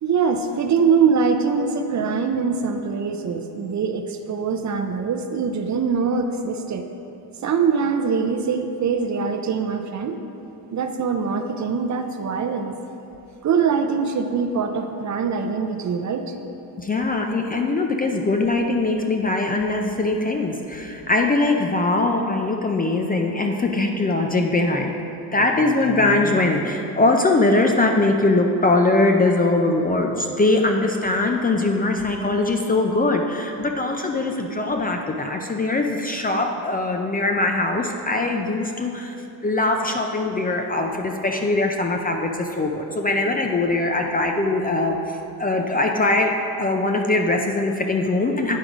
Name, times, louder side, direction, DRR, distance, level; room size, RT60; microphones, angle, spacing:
voice 1, 0.0-6.9 7.4-10.2 10.7-12.7 13.4-16.3, right 5 dB, 45° right, 6 dB, 0.5 m, -23 dB
voice 2, 16.8-24.9 25.3-39.2 39.4-46.3 46.6-48.6, left 2 dB, 20° left, 2 dB, 0.4 m, -21 dB
9.3 x 5.1 x 4.9 m, 2.9 s
cardioid pair, 135°, 41 cm